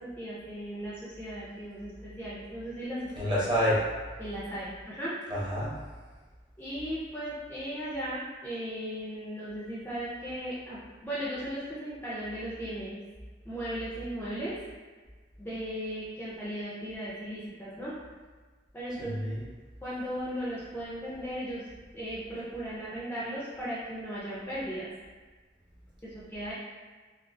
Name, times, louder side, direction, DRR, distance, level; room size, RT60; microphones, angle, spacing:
voice 1, 0.0-3.1 4.2-5.2 6.6-13.0 13.5-14.5 15.4-17.9 18.7-19.3 19.8-21.6 21.9-24.9 26.0-26.5, equal, 10° left, -9 dB, 0.4 m, -37 dB
voice 2, 3.2-3.8 5.3-5.8 19.0-19.4, equal, 25° right, -7 dB, 0.7 m, -28 dB
2.4 x 2.4 x 2.5 m, 1.4 s
head